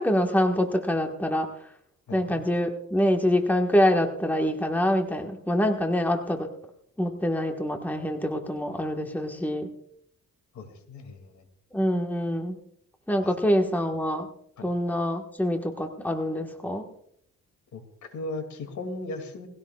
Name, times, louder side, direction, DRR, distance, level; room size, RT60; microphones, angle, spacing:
voice 1, 0.0-1.5 2.1-6.5 7.0-9.7 11.7-12.6 13.1-14.3 14.6-16.9, equal, 5° left, 3 dB, 1.4 m, -25 dB
voice 2, 2.1-2.4 10.5-11.4 13.2-13.3 14.6-14.7 17.7-19.5, left 2 dB, 75° left, 7 dB, 2.5 m, -37 dB
20.0 x 16.5 x 2.4 m, 0.70 s
cardioid pair, 110°, 30 cm